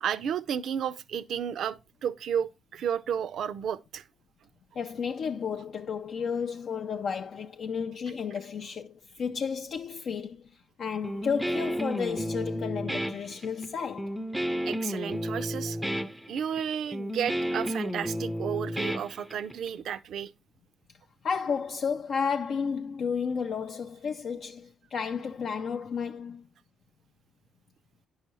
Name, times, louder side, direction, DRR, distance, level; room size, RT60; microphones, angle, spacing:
voice 1, 0.0-4.0 14.7-15.9 16.3-20.3, right 8 dB, 70° right, 0.4 m, -32 dB
voice 2, 4.8-14.2 21.2-26.5, left 6 dB, 55° left, 0.3 m, -32 dB
Guitar, 11.0-19.7, equal, 5° right, 0.4 m, -32 dB
9.6 x 5.6 x 3.0 m
cardioid pair, 90°, 0 cm